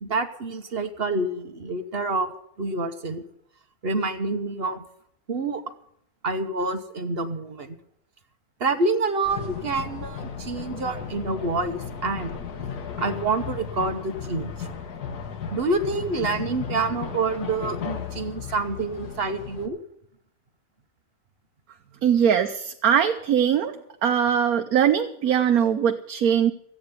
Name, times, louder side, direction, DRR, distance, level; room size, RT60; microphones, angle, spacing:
voice 1, 0.0-2.3 2.6-3.2 3.8-4.8 5.3-5.6 6.2-7.8 8.6-12.3 13.0-14.5 15.5-19.8, right 3 dB, 45° right, 9 dB, 1.1 m, -27 dB
sound 1, 9.2-19.7, left 6 dB, 90° left, 1.8 m, -35 dB
voice 2, 22.0-23.7 24.0-26.5, right 8 dB, 75° right, 5 dB, 1.3 m, -21 dB
14.5 x 8.7 x 9.4 m, 0.72 s
omnidirectional pair, 1.6 m